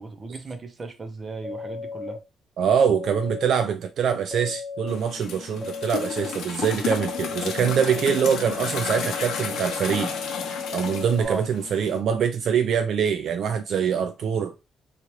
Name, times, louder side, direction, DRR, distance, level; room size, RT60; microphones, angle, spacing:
voice 1, 0.0-2.2 11.2-11.5, right 4 dB, 35° right, 0.7 m, -35 dB
sound 1, 1.4-2.2 2.8-3.5 4.3-5.0 5.6-6.3 7.0-11.3, left 4 dB, 10° left, 0.7 m, -35 dB
voice 2, 2.6-10.1 10.7-14.5, right 7 dB, 65° right, 0.3 m, -24 dB
sound 2, 4.9-12.0, left 6 dB, 75° left, 0.7 m, -32 dB
2.9 x 2.4 x 3.1 m
cardioid pair, 90°, 0 cm